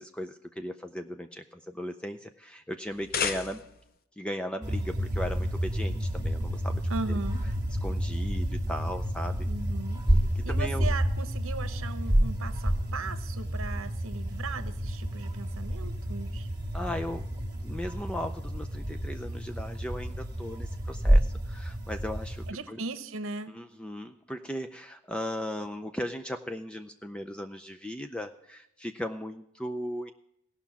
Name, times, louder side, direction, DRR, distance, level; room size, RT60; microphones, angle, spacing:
voice 1, 0.0-3.6 4.2-6.8 7.8-9.5 10.4-10.9 16.7-17.3 17.6-22.8 23.5-30.1, equal, 5° left, 8 dB, 0.4 m, -37 dB
sound 1, 2.8-4.0, left 6 dB, 45° left, 0.7 m, -33 dB
sound 2, 4.6-22.5, equal, 20° right, 2.0 m, -29 dB
voice 2, 6.9-7.4 9.4-10.0 10.4-16.5 22.5-23.5, right 3 dB, 65° right, 12 dB, 0.9 m, -38 dB
16.5 x 5.7 x 7.1 m, 0.81 s
head